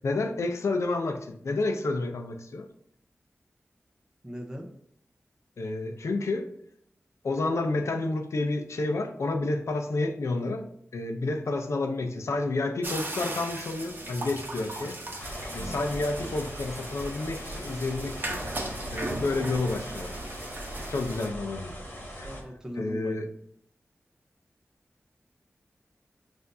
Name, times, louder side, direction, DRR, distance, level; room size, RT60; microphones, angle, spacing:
voice 1, 0.0-2.7 5.6-6.5 7.2-10.7 10.9-15.0 15.5-18.4 18.9-20.1 20.9-21.8 22.2-22.3 22.8-23.2, left 2 dB, 80° left, 5 dB, 0.5 m, -30 dB
voice 2, 4.2-4.7 12.0-12.1 22.2-23.2, equal, 15° right, 1 dB, 0.7 m, -39 dB
sound 1, 12.8-21.3, right 1 dB, 45° right, 0.9 m, -37 dB
sound 2, 15.2-22.4, equal, 45° left, 1.2 m, -40 dB
5.8 x 2.6 x 2.6 m, 0.72 s
wide cardioid pair, 85°, 5 cm